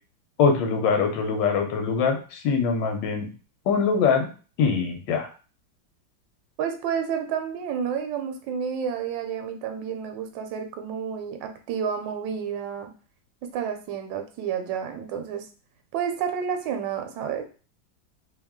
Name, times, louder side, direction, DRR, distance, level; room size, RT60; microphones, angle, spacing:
voice 1, 0.4-3.3 3.7-4.3 4.6-5.3, left 5 dB, 75° left, 5 dB, 1.4 m, -23 dB
voice 2, 6.6-12.9 13.5-15.5 15.9-17.4, right 7 dB, 75° right, 6 dB, 1.2 m, -30 dB
3.3 x 3.0 x 3.6 m, 0.36 s
omnidirectional pair, 2.1 m